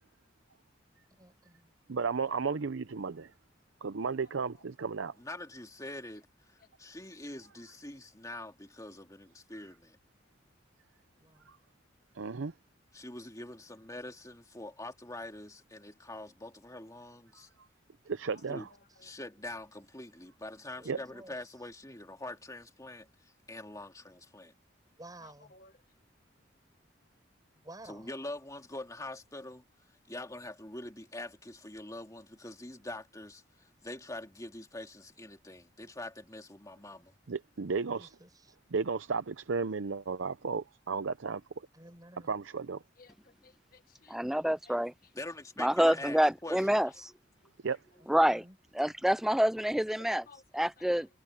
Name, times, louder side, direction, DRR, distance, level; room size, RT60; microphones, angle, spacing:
voice 1, 1.2-1.7 11.2-11.6 18.6-18.7 20.8-21.4 25.0-25.5 27.6-28.1 37.9-38.5 41.7-42.3 48.1-48.6, right 1 dB, 20° right, 5.3 m, -53 dB
voice 2, 1.9-3.3 3.8-5.1 11.5-11.6 12.1-12.5 18.1-18.7 20.9-21.0 37.3-38.1 38.7-41.4 42.3-42.8 47.6-47.8, right 5 dB, 75° right, 0.6 m, -33 dB
voice 3, 5.2-10.0 12.9-17.5 18.5-18.7 19.0-24.5 27.8-29.6 29.9-37.1 45.2-46.7, left 2 dB, 15° left, 2.5 m, -44 dB
voice 4, 25.2-25.7 43.0-44.4 44.7-44.8 46.8-46.9 50.1-50.9, left 4 dB, 50° left, 1.5 m, -59 dB
voice 5, 44.1-44.9 45.6-46.9 48.1-48.4 48.7-50.2 50.5-51.1, equal, ahead, 0.3 m, -27 dB
head